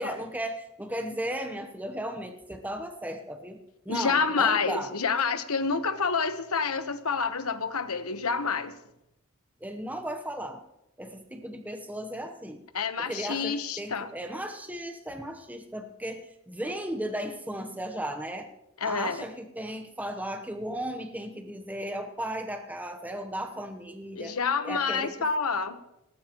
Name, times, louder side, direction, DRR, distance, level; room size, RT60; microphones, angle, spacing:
voice 1, 0.0-4.9 9.6-10.6 11.0-12.6 13.0-18.5 18.8-24.4 24.6-25.3, right 1 dB, 5° right, 6 dB, 0.9 m, -35 dB
voice 2, 3.9-8.7 12.7-14.1 18.8-19.2 24.2-25.8, left 5 dB, 75° left, 10 dB, 1.1 m, -28 dB
19.5 x 18.5 x 3.0 m, 0.86 s
head